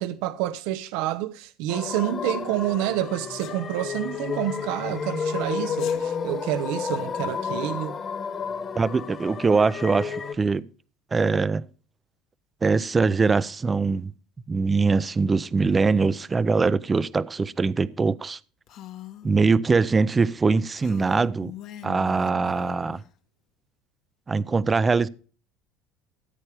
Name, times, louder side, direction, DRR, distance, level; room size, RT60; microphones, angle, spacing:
voice 1, 0.0-8.0, right 13 dB, 80° right, 0.6 m, -28 dB
sound 1, 1.7-10.3, left 6 dB, 35° left, 1.4 m, -31 dB
Sneeze, 3.4-3.6 5.7-6.0, left 11 dB, 80° left, 3.3 m, -43 dB
voice 2, 8.8-10.6 11.1-11.7 12.6-14.1 14.5-18.4 19.2-21.5 21.8-23.0 24.3-25.1, right 4 dB, 20° right, 0.4 m, -22 dB
Female speech woman speaking, 18.7-19.3 20.8-23.1, left 12 dB, 60° left, 1.2 m, -41 dB
14.5 x 8.2 x 3.4 m
cardioid pair, 125°, 0 cm